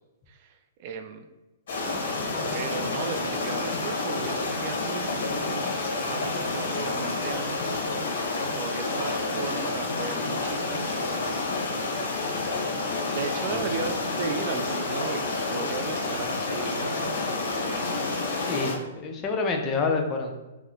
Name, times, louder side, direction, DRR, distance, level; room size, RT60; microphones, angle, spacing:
voice 1, 0.3-1.3 2.5-7.7 8.5-11.4 13.1-17.9, right 5 dB, 45° right, 7 dB, 0.3 m, -36 dB
sound 1, 1.7-18.8, left 3 dB, 65° left, 0.8 m, -29 dB
voice 2, 18.3-20.3, left 4 dB, 25° left, 2 dB, 0.5 m, -28 dB
2.9 x 2.0 x 3.7 m, 1.1 s
hypercardioid pair, 130°, 0 cm